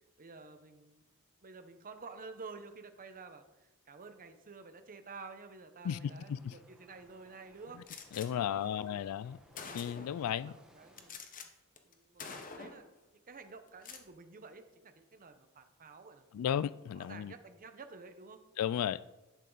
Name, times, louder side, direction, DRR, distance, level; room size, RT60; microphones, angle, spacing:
voice 1, 0.2-1.0 1.4-9.1 10.0-11.2 11.8-12.8 13.3-16.3 16.9-18.4, right 4 dB, 40° right, 0.8 m, -51 dB
voice 2, 5.8-6.5 8.1-9.4 9.7-10.6 16.3-17.3 18.6-19.0, left 9 dB, 70° left, 0.3 m, -34 dB
sound 1, 6.0-11.1, right 1 dB, 5° right, 1.2 m, -63 dB
Gunshot gunfire, 7.9-8.3 9.1-9.2 9.6-10.2 11.0-11.5 11.8-11.9 12.2-12.9 13.7-14.1, left 5 dB, 40° left, 0.9 m, -46 dB
11.0 x 8.5 x 3.9 m
head